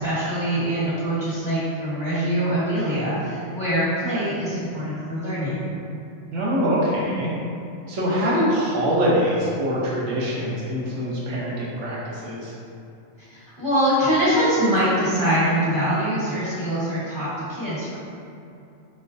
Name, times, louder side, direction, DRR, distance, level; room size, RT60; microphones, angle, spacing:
voice 1, 0.0-5.7 13.3-18.0, equal, 15° left, -14 dB, 1.1 m, -23 dB
voice 2, 6.3-7.3 7.9-12.6, equal, 65° right, -6 dB, 1.1 m, -24 dB
5.2 x 2.1 x 2.5 m, 2.7 s
omnidirectional pair, 1.4 m